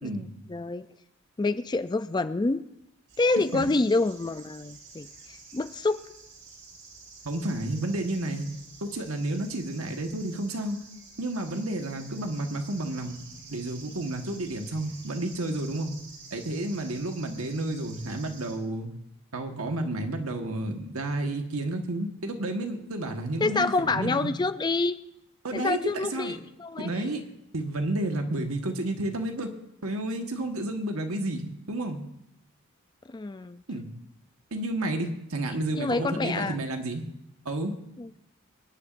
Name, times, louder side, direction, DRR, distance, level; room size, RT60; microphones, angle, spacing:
voice 1, 0.0-0.9 1.4-2.6 3.2-6.0 23.4-25.0 25.5-27.1 33.1-33.6 35.8-36.6 38.0-38.1, left 3 dB, 20° left, 12 dB, 0.4 m, -27 dB
sound 1, 3.1-18.5, right 4 dB, 65° right, 5.1 m, -49 dB
voice 2, 7.2-8.5 8.8-10.8 11.2-13.2 13.5-16.0 16.3-18.9 19.3-24.3 25.4-25.8 26.1-26.3 26.8-27.2 27.5-29.6 29.8-32.0 33.7-33.9 34.5-37.0 37.4-37.8, right 1 dB, 85° right, 4 dB, 1.5 m, -31 dB
25.0 x 10.5 x 2.6 m, 0.80 s
head